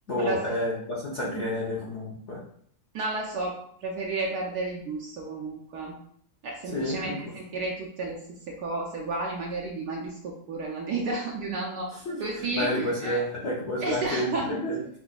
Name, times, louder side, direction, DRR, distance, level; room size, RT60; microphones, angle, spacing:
voice 1, 0.1-2.4 6.7-7.3 11.9-12.2 12.5-14.8, left 1 dB, 65° left, -6 dB, 0.7 m, -30 dB
voice 2, 2.9-6.0 6.4-11.9 12.2-13.2 13.8-14.5, right 3 dB, 70° right, -2 dB, 1.0 m, -32 dB
5.8 x 2.5 x 2.3 m, 0.64 s
omnidirectional pair, 2.2 m